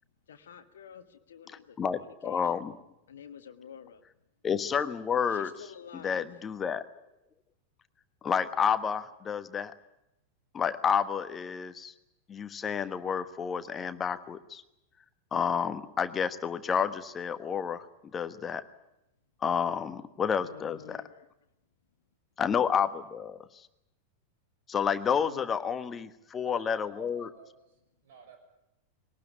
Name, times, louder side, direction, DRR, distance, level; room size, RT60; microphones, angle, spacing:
voice 1, 0.3-2.4 3.1-4.0 5.3-6.4 20.4-21.3 25.2-25.5, left 7 dB, 65° left, 7 dB, 1.4 m, -49 dB
voice 2, 1.8-2.7 4.4-5.7 5.9-6.8 8.2-9.7 10.5-11.9 12.3-14.6 15.3-17.8 18.1-18.6 19.4-21.0 22.4-23.7 24.7-27.3, left 7 dB, 20° left, 12 dB, 1.3 m, -30 dB
voice 3, 26.4-27.8 28.0-28.4, right 6 dB, 55° right, 6 dB, 6.2 m, -53 dB
22.0 x 18.5 x 10.0 m, 0.86 s
figure-of-eight pair, 90°, 0 cm